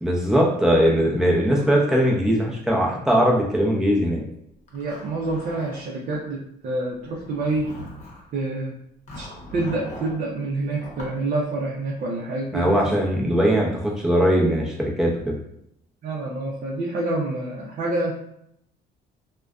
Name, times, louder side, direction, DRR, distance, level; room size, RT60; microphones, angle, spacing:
voice 1, 0.0-4.2 12.5-15.4, equal, 5° right, -3 dB, 0.6 m, -20 dB
Zipper (clothing), 4.7-6.2 7.0-8.3 9.1-10.2 10.8-11.2, left 1 dB, 40° left, 0.9 m, -40 dB
voice 2, 4.7-7.7 8.3-8.7 9.1-9.3 9.5-12.8 16.0-18.1, right 2 dB, 55° right, -3 dB, 0.5 m, -27 dB
2.4 x 2.1 x 2.3 m, 0.75 s
cardioid pair, 110°, 17 cm